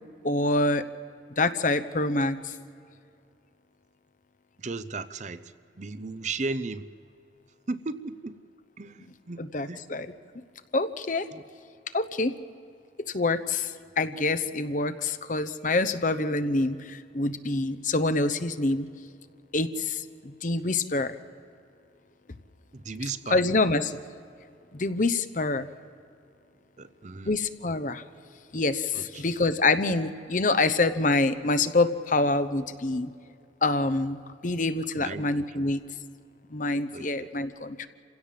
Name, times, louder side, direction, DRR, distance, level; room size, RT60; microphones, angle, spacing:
voice 1, 0.2-0.8 1.4-2.5 9.4-10.1 10.7-11.3 11.9-12.3 13.1-18.9 19.5-21.2 23.3-24.0 24.7-25.7 27.3-28.0 28.5-33.1 33.6-34.2 34.4-35.8 36.5-37.9, left 2 dB, 45° left, 12 dB, 0.9 m, -26 dB
voice 2, 4.6-6.9 7.7-8.4 8.8-9.4 9.7-9.8 11.3-11.4 22.7-23.4 26.8-27.3 28.9-29.2 35.0-35.6 36.9-37.3, right 3 dB, 40° right, 14 dB, 0.6 m, -36 dB
27.0 x 16.5 x 7.5 m, 2.5 s
head